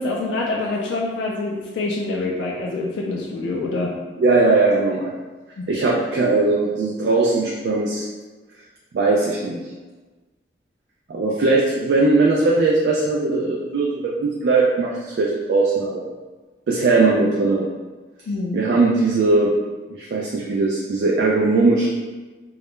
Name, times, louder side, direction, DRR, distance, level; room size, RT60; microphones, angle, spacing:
voice 1, 0.0-4.0 5.6-5.7 18.3-18.6, left 2 dB, 85° left, -2 dB, 0.3 m, -25 dB
voice 2, 4.2-5.1 5.7-8.1 8.9-9.6 11.1-16.1 16.7-17.7 18.5-19.5 19.9-21.9, right 3 dB, 70° right, -3 dB, 0.3 m, -19 dB
2.2 x 2.0 x 3.0 m, 1.3 s
head